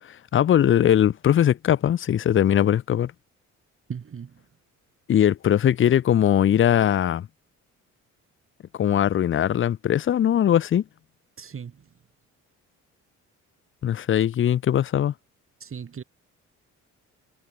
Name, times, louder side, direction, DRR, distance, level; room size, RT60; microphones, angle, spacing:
voice 1, 0.3-3.1 5.1-7.3 8.8-10.8 13.8-15.1, left 10 dB, 40° left, 0.6 m, -20 dB
voice 2, 3.9-4.5 11.4-11.9 15.6-16.0, right 7 dB, 45° right, 3.8 m, -37 dB
cardioid pair, 90°, 30 cm